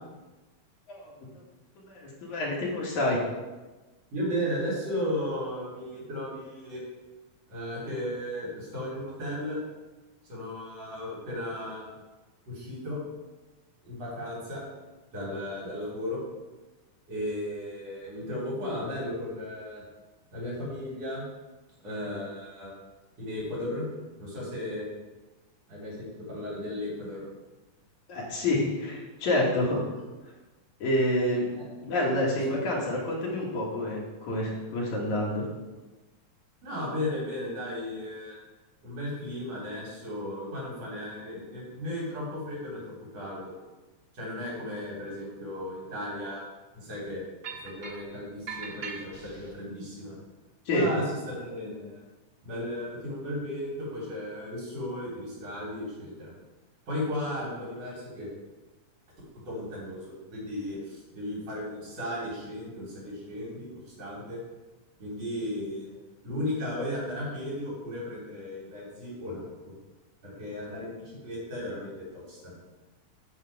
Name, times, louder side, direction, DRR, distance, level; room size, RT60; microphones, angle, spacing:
voice 1, 0.9-1.4 1.9-3.2 28.1-29.8 30.8-31.5 31.8-35.5 50.7-50.9, left 1 dB, 65° left, -3 dB, 3.2 m, -28 dB
voice 2, 4.1-6.8 7.5-9.6 10.3-11.9 12.5-13.0 13.8-14.6 15.1-16.2 17.1-19.8 20.3-21.2 21.8-22.7 23.2-23.9 24.2-24.9 25.7-27.2 31.6-31.7 32.5-32.7 36.6-38.3 38.8-43.5 44.1-46.4 46.7-47.2 47.6-50.2 50.7-52.0 52.4-56.3 56.9-58.3 59.4-63.7 64.0-64.4 65.0-66.0 66.2-69.7 70.2-72.5, left 1 dB, 50° right, -7 dB, 4.7 m, -35 dB
sound 1, 47.4-48.1 48.5-49.5, right 5 dB, 75° right, 0.7 m, -40 dB
8.4 x 7.4 x 5.0 m, 1.2 s
omnidirectional pair, 3.6 m